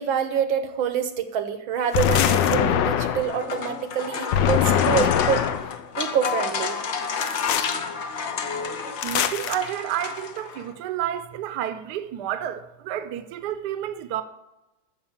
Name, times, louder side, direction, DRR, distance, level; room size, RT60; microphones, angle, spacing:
voice 1, 0.0-5.4 6.0-6.8, right 8 dB, 80° right, 1.8 m, -26 dB
sound 1, 1.9-3.4 4.3-5.8 7.2-7.7 9.0-9.6, left 10 dB, 70° left, 1.3 m, -22 dB
sound 2, 3.1-10.7, left 5 dB, 50° left, 0.9 m, -30 dB
voice 2, 9.0-14.2, right 11 dB, 65° right, 1.2 m, -30 dB
13.5 x 5.4 x 7.2 m
omnidirectional pair, 2.1 m